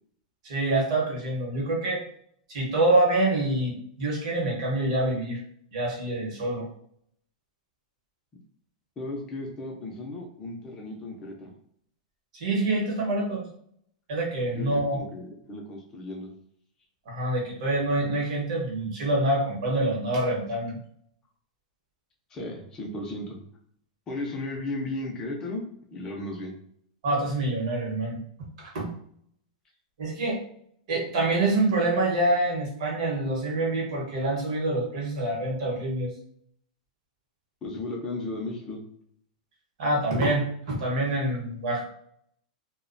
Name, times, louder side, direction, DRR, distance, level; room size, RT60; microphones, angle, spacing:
voice 1, 0.4-2.0 2.5-5.4 5.7-6.7 12.3-13.5 14.1-15.0 17.1-20.8 27.0-28.2 28.7-28.9 30.0-30.4 30.9-36.1 39.8-41.8, right 2 dB, 55° right, -3 dB, 0.9 m, -26 dB
voice 2, 9.0-11.5 14.5-16.3 22.3-23.4 24.1-25.6 25.9-26.6 37.6-38.8, left 2 dB, 15° left, 0 dB, 0.5 m, -35 dB
2.4 x 2.1 x 2.5 m, 0.67 s
supercardioid pair, 170°, 4 cm